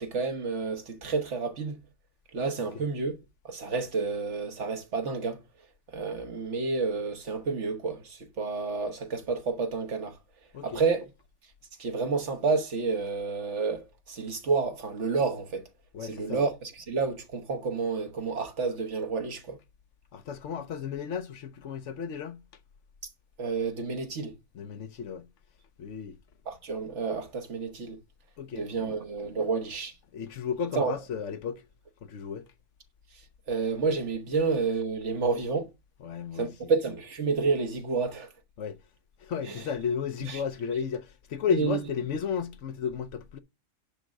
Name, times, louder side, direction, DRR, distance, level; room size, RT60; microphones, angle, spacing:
voice 1, 0.0-1.8 2.3-3.1 3.4-5.4 5.9-10.2 10.6-11.0 11.8-15.6 16.0-19.6 23.4-24.3 26.4-28.0 28.5-29.9 30.7-31.0 33.5-35.7 36.3-38.3 39.4-39.7 40.2-40.4 41.5-41.8, right 4 dB, 60° right, 1.5 m, -30 dB
voice 2, 15.9-16.4 20.1-22.4 24.5-25.3 25.8-26.1 28.4-28.9 30.1-31.6 32.0-32.5 36.0-36.5 38.6-38.8 39.2-43.4, left 7 dB, 70° left, 1.0 m, -33 dB
10.5 x 3.6 x 6.4 m
omnidirectional pair, 1.4 m